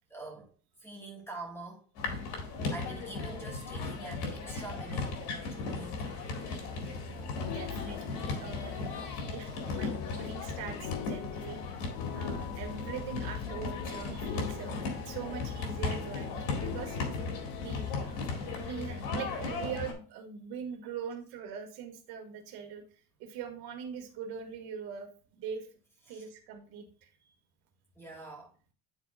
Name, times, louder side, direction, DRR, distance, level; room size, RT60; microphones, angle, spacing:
voice 1, 0.1-0.5 0.8-1.8 2.7-5.2 5.5-6.1 9.1-9.9 26.1-26.2 28.0-28.5, right 2 dB, 5° left, 1.9 m, -45 dB
sound 1, 1.9-19.9, left 3 dB, 85° left, 2.0 m, -37 dB
sound 2, 7.2-18.3, left 11 dB, 70° left, 0.5 m, -43 dB
voice 2, 7.4-8.9 9.3-11.6 12.1-14.8 15.0-17.0 17.6-18.3 18.6-22.8 23.2-25.1 25.3-25.7 26.1-27.1, right 7 dB, 85° right, 1.6 m, -42 dB
10.5 x 4.1 x 2.4 m
cardioid pair, 175°, 37 cm